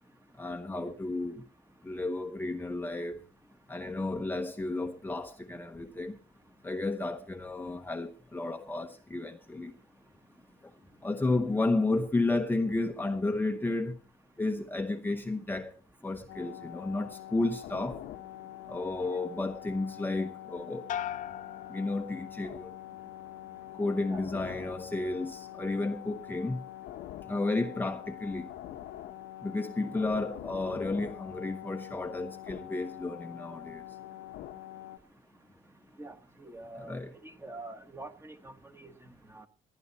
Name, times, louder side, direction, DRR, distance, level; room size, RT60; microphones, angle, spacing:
voice 1, 0.4-1.4 1.8-3.2 3.7-6.2 6.6-9.7 11.0-14.0 14.4-15.7 16.0-18.0 18.7-20.9 21.7-22.7 23.7-26.6 27.3-28.5 29.4-33.8 36.7-37.1, left 2 dB, 10° left, 0.9 m, -32 dB
sound 1, 16.3-35.0, left 13 dB, 85° left, 1.1 m, -45 dB
sound 2, 20.9-22.6 23.0-23.6, left 10 dB, 50° left, 0.8 m, -40 dB
voice 2, 36.0-39.5, right 2 dB, 15° right, 1.5 m, -46 dB
19.5 x 11.0 x 4.1 m
cardioid pair, 110°, 17 cm